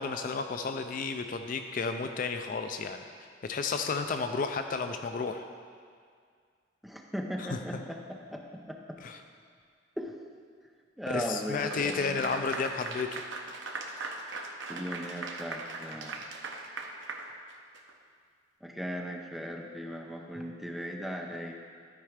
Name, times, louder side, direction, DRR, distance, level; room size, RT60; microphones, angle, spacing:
voice 1, 0.0-5.4 7.4-7.8 9.0-9.2 11.1-13.1, left 4 dB, 45° left, 7 dB, 0.4 m, -32 dB
voice 2, 6.8-9.0 10.0-10.1 11.0-12.5 14.7-16.2 18.6-21.5, equal, ahead, 1 dB, 0.6 m, -38 dB
Clapping / Applause, 11.6-17.9, right 3 dB, 80° right, 0.8 m, -40 dB
12.5 x 4.5 x 4.9 m, 2.1 s
head